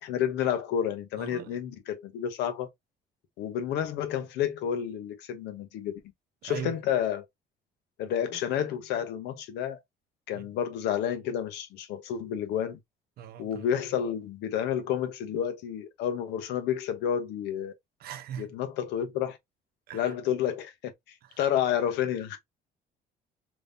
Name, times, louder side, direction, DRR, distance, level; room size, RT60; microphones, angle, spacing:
voice 1, 0.0-2.7 3.4-6.0 6.4-7.2 8.0-9.8 10.3-12.8 13.4-17.7 18.4-19.4 19.9-20.9 21.4-22.4, left 9 dB, 85° left, 0.9 m, -30 dB
voice 2, 1.2-1.6 6.4-6.7 10.4-10.5 13.2-13.7 18.0-18.5 19.9-20.0, right 9 dB, 65° right, 0.7 m, -39 dB
3.5 x 3.0 x 2.6 m
cardioid pair, 110°, 17 cm